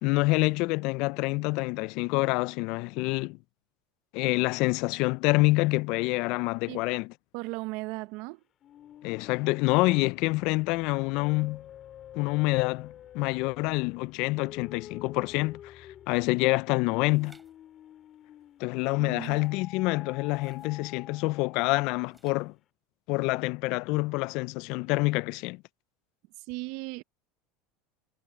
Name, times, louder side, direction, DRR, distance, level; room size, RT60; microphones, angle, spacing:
voice 1, 0.0-3.4 4.1-7.1 9.0-11.6 12.1-17.4 18.6-22.5 23.1-25.6, left 24 dB, 65° left, 0.4 m, -27 dB
voice 2, 7.3-8.4 19.0-19.4 26.5-27.0, right 23 dB, 65° right, 0.9 m, -36 dB
sound 1, 8.6-18.8 19.3-22.1, left 11 dB, 45° left, 5.7 m, -49 dB
sound 2, 17.1-17.5 19.1-19.6 20.3-20.8 22.1-22.6, right 2 dB, 10° right, 3.9 m, -59 dB
hypercardioid pair, 90°, 0 cm